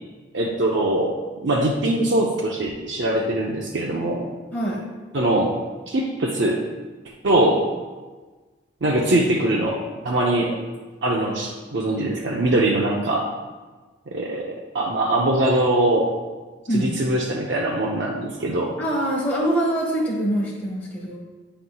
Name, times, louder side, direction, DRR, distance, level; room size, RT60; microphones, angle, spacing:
voice 1, 0.3-4.3 5.1-5.6 5.9-6.6 7.2-7.7 8.8-10.6 11.0-13.3 14.1-14.5 14.7-16.1 16.7-18.7, right 1 dB, 65° right, -2 dB, 0.7 m, -22 dB
voice 2, 4.5-4.8 16.7-16.9 18.8-21.2, right 1 dB, 10° left, -5 dB, 1.1 m, -24 dB
9.4 x 5.7 x 2.3 m, 1.3 s
head